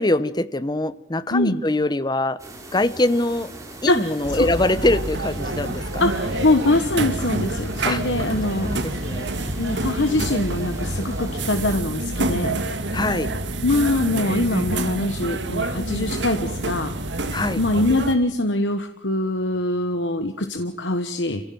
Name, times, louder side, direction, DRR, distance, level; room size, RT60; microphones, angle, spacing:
voice 1, 0.0-2.4 2.7-3.5 3.8-6.0 7.8-8.0 8.6-9.3 12.9-13.3 17.3-17.6, left 2 dB, 25° left, 15 dB, 0.8 m, -23 dB
voice 2, 1.3-1.6 3.9-4.5 6.0-8.7 9.6-12.6 13.6-16.9 17.6-21.4, left 2 dB, 85° left, 7 dB, 1.3 m, -23 dB
sound 1, 2.4-11.8, right 2 dB, 20° right, 3.7 m, -40 dB
sound 2, 4.2-18.2, right 2 dB, 80° right, 1.8 m, -27 dB
27.0 x 16.0 x 7.7 m, 0.79 s
head